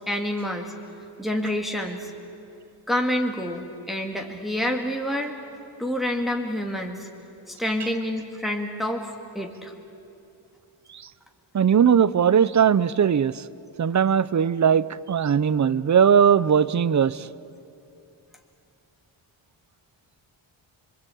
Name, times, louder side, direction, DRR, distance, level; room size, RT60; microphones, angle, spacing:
voice 1, 0.1-0.7 1.2-2.1 2.9-5.3 5.8-7.1 7.5-9.7, left 1 dB, ahead, 1 dB, 2.0 m, -28 dB
voice 2, 11.5-13.3 13.8-17.3, right 7 dB, 35° right, 18 dB, 0.6 m, -19 dB
25.5 x 24.0 x 8.4 m, 2.7 s
wide cardioid pair, 125°, 49 cm